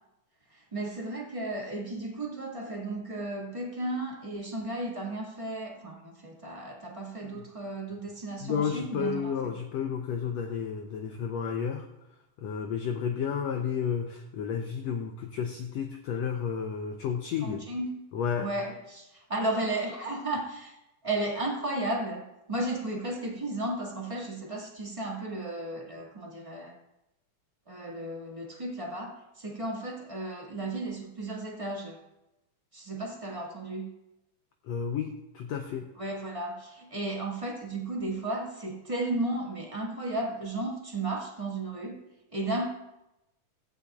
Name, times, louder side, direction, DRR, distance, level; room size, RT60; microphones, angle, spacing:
voice 1, 0.5-9.5 17.4-18.0 18.4-20.8 21.0-22.2 22.5-26.8 27.7-32.0 32.7-33.9 36.0-42.0 42.3-42.7, right 2 dB, 15° right, -2 dB, 1.2 m, -34 dB
voice 2, 8.4-11.9 12.4-17.6 18.1-18.5 34.7-35.9, left 7 dB, 80° left, 4 dB, 1.6 m, -32 dB
16.5 x 15.0 x 2.4 m, 0.94 s
omnidirectional pair, 3.8 m